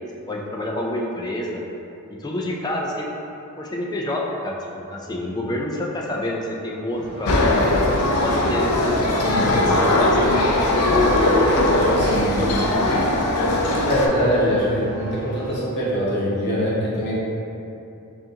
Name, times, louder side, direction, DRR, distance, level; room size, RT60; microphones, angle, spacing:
voice 1, 0.3-1.6 2.1-3.1 3.6-7.5 7.8-8.7 9.0-11.1, left 1 dB, 20° left, -2 dB, 0.3 m, -28 dB
sound 1, 6.9-15.6, right 2 dB, 50° right, 1.2 m, -35 dB
sound 2, 7.3-14.1, left 1 dB, 85° left, 0.5 m, -19 dB
voice 2, 9.2-9.7 11.7-12.8 13.8-17.2, equal, 50° left, -8 dB, 0.7 m, -23 dB
5.1 x 2.5 x 2.7 m, 2.8 s
head